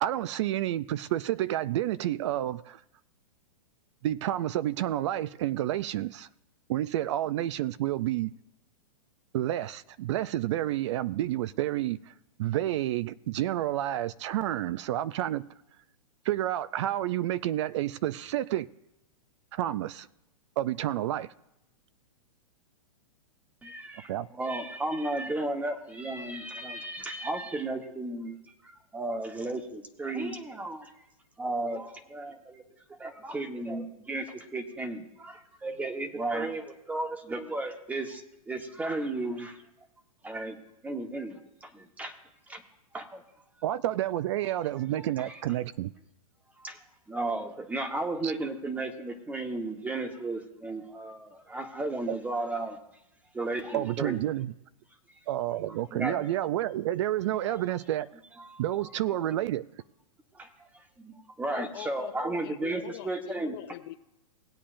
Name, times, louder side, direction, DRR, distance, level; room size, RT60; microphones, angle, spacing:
voice 1, 0.0-2.8 4.0-6.3 6.7-8.3 9.3-12.1 12.4-15.4 16.2-18.7 19.5-20.1 20.6-21.3 24.1-24.3 43.6-45.9 48.2-48.3 53.7-54.5 55.3-58.1 58.6-59.6, right 13 dB, 50° right, 0.4 m, -29 dB
voice 2, 23.6-30.9 31.4-32.6 33.0-34.3 34.5-39.6 40.2-42.1 42.5-42.6 42.9-43.2 44.4-44.6 45.0-45.4 46.6-52.8 53.3-54.2 55.1-55.2 55.7-56.3 57.4-57.8 58.3-59.3 60.3-63.6, right 2 dB, 10° right, 1.1 m, -35 dB
voice 3, 61.5-64.0, left 17 dB, 40° left, 0.4 m, -43 dB
19.0 x 8.5 x 2.5 m
hypercardioid pair, 135°, 19 cm